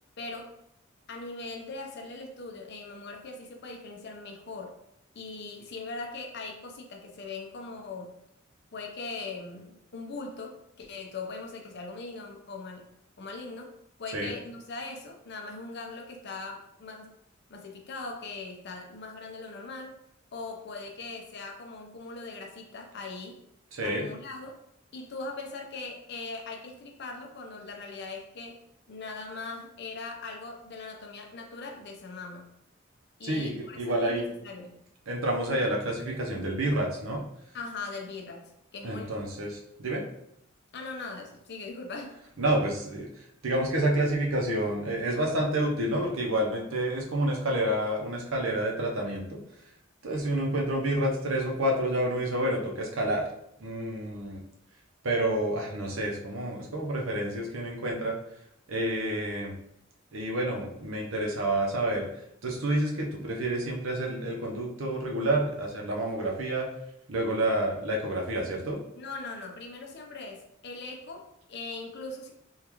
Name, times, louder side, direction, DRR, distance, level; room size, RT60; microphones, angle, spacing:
voice 1, 0.2-0.6 1.1-4.8 5.1-8.1 8.7-12.9 13.2-13.7 14.0-17.2 17.5-20.0 20.3-23.4 23.8-24.6 24.9-32.5 33.2-34.7 37.5-39.2 40.7-42.2 68.9-72.3, left 3 dB, 55° left, 2 dB, 0.6 m, -40 dB
voice 2, 23.7-24.1 33.2-34.3 35.1-37.2 38.8-40.0 42.4-49.4 50.0-53.2 53.6-54.4 55.0-58.1 58.7-59.5 60.1-62.1 62.4-66.7 67.1-68.8, right 1 dB, 90° right, 0 dB, 0.7 m, -29 dB
3.6 x 2.4 x 3.0 m, 0.75 s
head